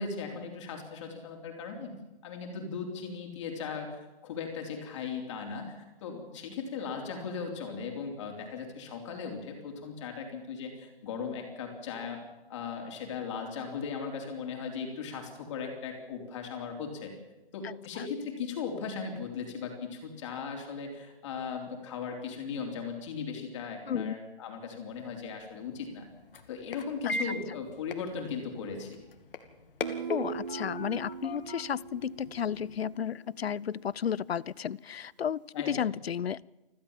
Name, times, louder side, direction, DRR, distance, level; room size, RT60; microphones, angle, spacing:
voice 1, 0.0-1.9 2.2-12.2 12.5-17.2 17.5-26.1 26.5-29.0 35.5-35.9, left 5 dB, 30° left, 3 dB, 3.6 m, -38 dB
sound 1, 24.9-32.8, left 2 dB, 65° left, 2.6 m, -41 dB
Guitar, 29.8-33.5, right 7 dB, 45° right, 0.8 m, -41 dB
voice 2, 30.1-36.5, left 8 dB, 80° left, 24 dB, 0.7 m, -33 dB
29.0 x 12.5 x 7.3 m, 1.0 s
hypercardioid pair, 165°, 30 cm